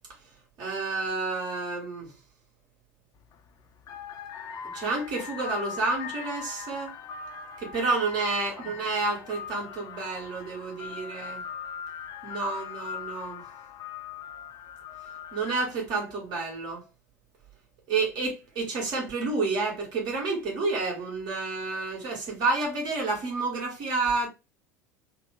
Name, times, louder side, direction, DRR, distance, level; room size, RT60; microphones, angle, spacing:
voice 1, 0.6-2.1 4.7-6.9 7.6-11.4 12.2-13.4 15.3-16.9 17.9-24.3, right 3 dB, 50° right, 1.8 m, -30 dB
sound 1, 3.2-3.4 3.8-15.9, left 7 dB, 40° left, 0.5 m, -40 dB
3.6 x 2.2 x 3.7 m
figure-of-eight pair, 70°, 9 cm